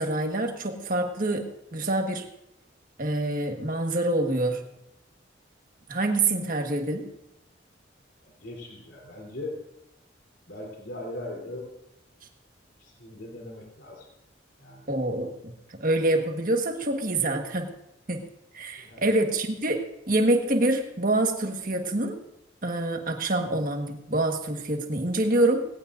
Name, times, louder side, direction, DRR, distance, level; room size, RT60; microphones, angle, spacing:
voice 1, 0.0-2.2 3.0-4.6 5.9-7.1 14.9-17.7 18.1-18.3 18.5-22.2 22.6-25.6, right 2 dB, 45° right, 4 dB, 1.5 m, -26 dB
voice 2, 8.2-9.6 10.5-11.7 12.8-14.1 14.6-14.9 18.8-19.2, left 1 dB, 65° left, -1 dB, 3.4 m, -39 dB
18.5 x 17.0 x 2.6 m, 0.83 s
head